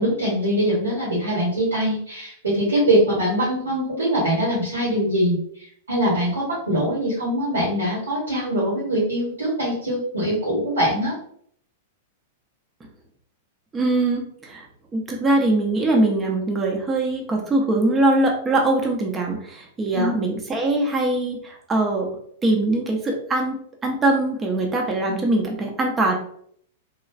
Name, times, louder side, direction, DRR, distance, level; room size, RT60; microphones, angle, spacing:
voice 1, 0.0-5.4 5.9-11.1 19.9-20.3, equal, 80° right, -7 dB, 1.1 m, -22 dB
voice 2, 13.7-14.6 14.9-22.1 22.4-26.1, right 2 dB, 20° right, 1 dB, 0.6 m, -22 dB
3.0 x 2.4 x 2.4 m, 0.63 s
figure-of-eight pair, 100°, 0 cm